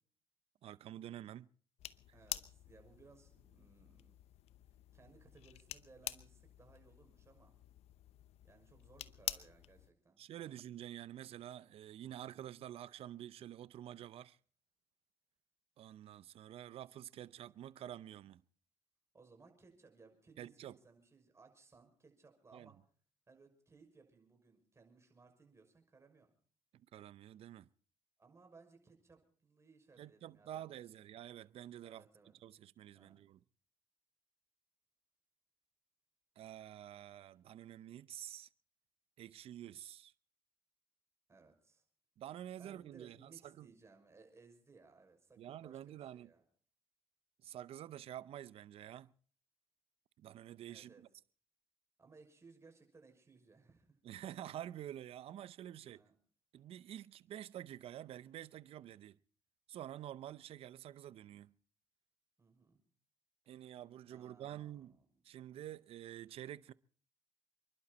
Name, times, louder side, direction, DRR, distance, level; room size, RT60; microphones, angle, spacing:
voice 1, 0.6-1.5 10.2-14.4 15.8-18.4 20.4-20.8 22.5-22.7 26.7-27.7 30.0-32.0 32.4-33.4 36.4-38.5 39.2-40.1 42.2-43.7 45.4-46.3 47.4-49.1 50.2-51.1 54.0-56.0 56.5-59.2 59.7-61.5 63.5-65.0 65.2-66.7, right 11 dB, 65° right, 0.7 m, -49 dB
sound 1, 1.8-9.9, left 13 dB, 75° left, 0.8 m, -48 dB
voice 2, 2.1-4.2 4.9-7.6 8.4-10.6 19.1-22.8 23.3-26.3 28.2-30.8 31.8-32.3 32.9-33.2 41.3-41.8 42.6-46.4 50.7-51.0 52.0-54.0 55.9-56.1 62.4-62.8 64.1-65.0, right 4 dB, 25° right, 6.1 m, -63 dB
29.0 x 11.5 x 4.2 m
cardioid pair, 85°, 11 cm